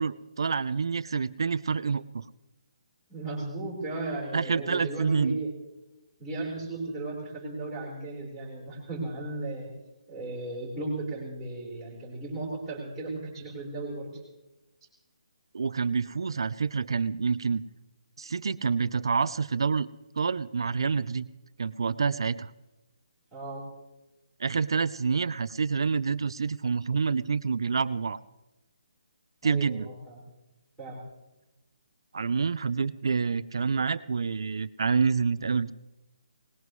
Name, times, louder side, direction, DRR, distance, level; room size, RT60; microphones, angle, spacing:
voice 1, 0.0-2.2 4.3-5.4 15.5-17.6 18.2-19.9 20.2-21.3 21.6-22.5 24.4-28.2 29.4-29.9 32.1-35.7, right 5 dB, 55° right, 16 dB, 0.5 m, -27 dB
voice 2, 3.1-5.5 6.2-9.7 10.1-14.2 23.3-23.6 29.4-30.2 30.8-31.0, right 2 dB, ahead, -10 dB, 4.3 m, -35 dB
21.5 x 20.0 x 3.2 m, 1.0 s
hypercardioid pair, 180°, 3 cm